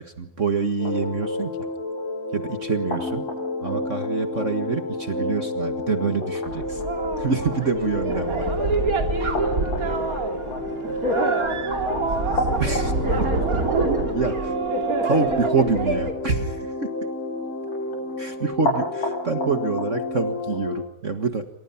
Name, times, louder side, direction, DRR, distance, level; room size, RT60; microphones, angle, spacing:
voice 1, 0.0-1.5 2.3-3.3 3.6-6.8 7.2-8.5 12.6-12.9 13.2-13.3 14.1-14.3 15.0-16.9 18.2-21.5, right 4 dB, 70° right, 7 dB, 0.7 m, -26 dB
sound 1, 0.8-20.7, left 2 dB, 50° left, 7.9 m, -29 dB
sound 2, 6.5-16.1, right 3 dB, 25° right, 2.8 m, -26 dB
voice 2, 9.3-9.9 10.5-14.1, left 6 dB, 80° left, 2 dB, 4.1 m, -40 dB
28.5 x 26.0 x 5.8 m, 0.79 s
omnidirectional pair, 4.0 m